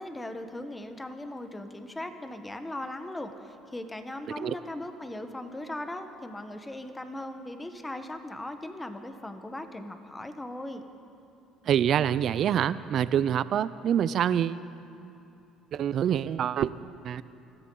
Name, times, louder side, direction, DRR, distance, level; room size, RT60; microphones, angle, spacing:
voice 1, 0.0-10.8, left 1 dB, 10° left, 8 dB, 1.1 m, -38 dB
voice 2, 11.6-14.6 15.7-16.7 17.0-17.2, right 9 dB, 55° right, 16 dB, 0.5 m, -26 dB
24.5 x 13.5 x 3.9 m, 2.8 s
cardioid pair, 105°, 0 cm